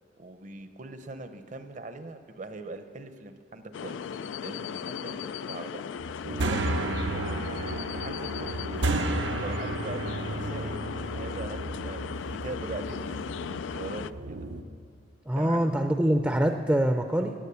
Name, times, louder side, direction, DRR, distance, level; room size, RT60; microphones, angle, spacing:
voice 1, 0.2-4.0 4.4-5.8 6.4-8.7 9.4-14.4 15.3-15.7, right 3 dB, 45° right, 9 dB, 0.8 m, -41 dB
sound 1, 3.7-14.1, left 7 dB, 85° left, 0.3 m, -37 dB
sound 2, 6.0-14.6, right 2 dB, 80° right, 0.8 m, -33 dB
voice 2, 15.3-17.3, right 1 dB, 10° right, 6 dB, 0.5 m, -24 dB
16.0 x 9.1 x 6.9 m, 2.3 s
head